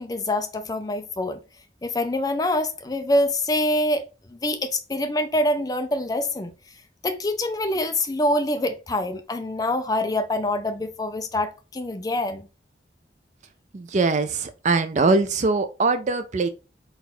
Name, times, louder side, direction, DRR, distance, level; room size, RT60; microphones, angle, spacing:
voice 1, 0.0-1.4 1.8-4.0 4.3-6.5 7.0-12.4, left 1 dB, 20° left, 0.4 m, -25 dB
voice 2, 13.7-16.5, right 3 dB, 40° right, 0.4 m, -22 dB
4.0 x 2.4 x 4.1 m
head